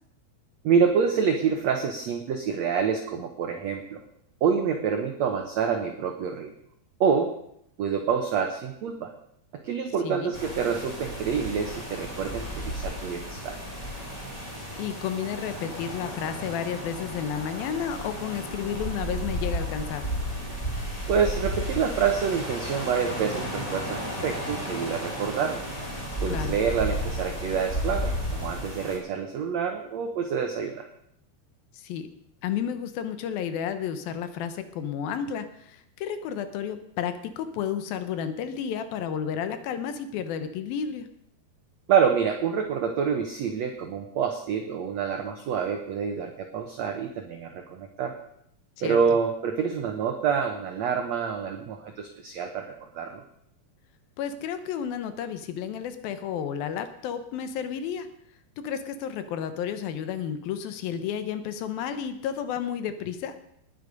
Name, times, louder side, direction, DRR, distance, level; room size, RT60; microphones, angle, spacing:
voice 1, 0.6-4.0 4.4-6.5 7.0-7.3 7.8-9.1 9.6-13.6 21.1-25.6 26.2-30.9 41.9-48.1 48.8-52.6 52.9-53.2, right 6 dB, 75° right, 5 dB, 1.6 m, -27 dB
voice 2, 10.0-10.3 14.8-20.0 26.3-26.6 31.7-32.1 32.4-41.1 48.8-49.0 54.2-58.1 58.6-63.4, left 8 dB, 75° left, 10 dB, 2.6 m, -32 dB
sound 1, 10.3-29.0, equal, 10° left, 2.7 m, -33 dB
19.0 x 8.4 x 5.2 m, 0.72 s
omnidirectional pair, 4.6 m